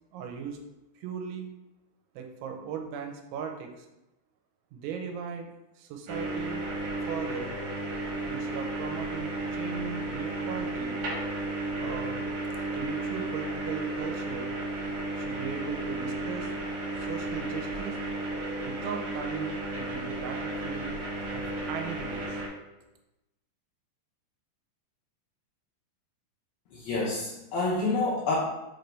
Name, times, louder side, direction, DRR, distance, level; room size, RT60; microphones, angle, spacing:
voice 1, 0.1-0.6 1.0-1.5 2.2-3.9 4.7-5.5 5.8-6.6 7.1-7.6 8.2-11.0 11.8-12.2 12.7-14.5 15.2-16.5 17.1-18.0 18.6-20.9 21.3-22.4, right 7 dB, 90° right, 3 dB, 3.1 m, -38 dB
sound 1, 6.1-22.5, right 2 dB, 60° right, 2.0 m, -33 dB
voice 2, 26.7-28.4, left 3 dB, 75° left, -5 dB, 2.3 m, -28 dB
7.2 x 3.9 x 3.4 m, 0.95 s
omnidirectional pair, 5.3 m